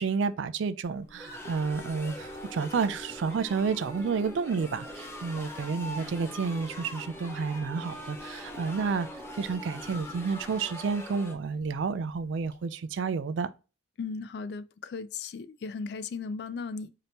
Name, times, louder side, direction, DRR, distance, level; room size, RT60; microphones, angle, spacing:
voice 1, 0.0-9.1 9.4-13.5, right 5 dB, 80° right, 0.4 m, -30 dB
Engine, 0.8-12.5, equal, 20° right, 1.3 m, -49 dB
sound 1, 1.2-11.3, left 1 dB, 15° left, 0.6 m, -43 dB
voice 2, 14.0-16.9, left 4 dB, 60° left, 0.3 m, -36 dB
5.1 x 2.7 x 2.9 m
head